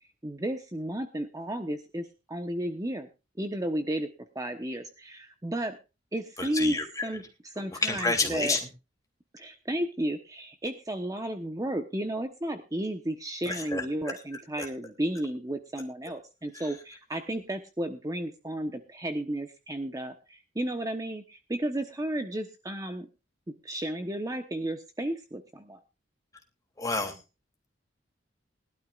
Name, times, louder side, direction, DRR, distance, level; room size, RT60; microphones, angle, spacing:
voice 1, 0.2-3.1 3.4-4.1 4.3-5.8 6.1-8.6 9.3-23.1 23.6-25.8, right 1 dB, 20° right, 6 dB, 1.1 m, -33 dB
voice 2, 6.4-7.0 7.8-8.6 13.4-13.8 26.8-27.1, left 3 dB, 20° left, 3 dB, 3.0 m, -28 dB
21.0 x 12.5 x 2.5 m, 0.29 s
head